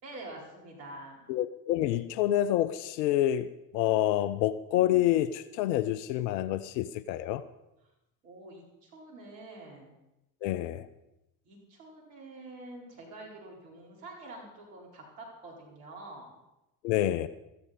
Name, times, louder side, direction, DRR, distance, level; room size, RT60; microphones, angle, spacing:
voice 1, 0.0-1.3 8.2-10.0 10.8-10.9 11.4-16.3, right 2 dB, 75° right, -1 dB, 4.6 m, -47 dB
voice 2, 1.3-3.5 3.7-7.4 10.4-10.9 16.8-17.3, left 13 dB, 75° left, 15 dB, 0.7 m, -27 dB
16.5 x 14.5 x 4.2 m, 0.92 s
hypercardioid pair, 60°, 50 cm